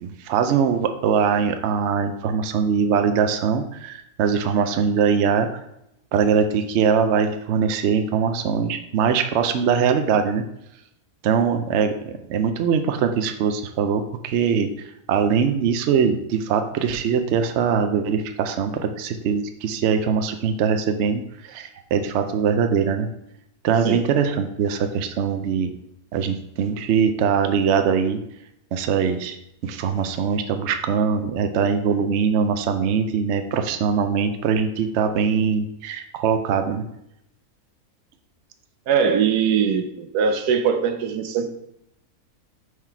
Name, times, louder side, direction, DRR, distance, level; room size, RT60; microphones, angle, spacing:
voice 1, 0.0-5.5 6.1-10.4 11.2-14.7 15.1-23.1 23.6-25.7 26.1-28.2 28.7-29.4 29.6-36.8, right 6 dB, 60° right, 7 dB, 0.7 m, -22 dB
voice 2, 38.9-41.5, right 7 dB, 80° right, 7 dB, 1.2 m, -21 dB
5.7 x 4.7 x 4.4 m, 0.79 s
omnidirectional pair, 1.7 m